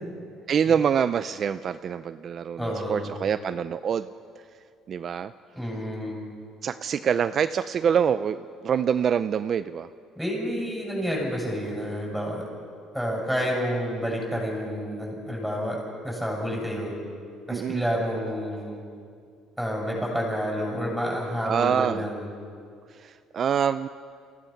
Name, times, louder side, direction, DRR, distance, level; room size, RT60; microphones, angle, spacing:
voice 1, 0.5-4.1 4.9-5.3 6.6-9.9 17.5-17.8 21.4-22.0 22.9-23.9, right 7 dB, 40° right, 12 dB, 0.4 m, -25 dB
voice 2, 2.6-3.1 5.5-6.2 10.1-12.4 12.9-16.9 17.5-18.8 19.6-22.3, equal, ahead, -3 dB, 7.1 m, -29 dB
28.0 x 16.0 x 5.9 m, 2.2 s
cardioid pair, 130°, 0 cm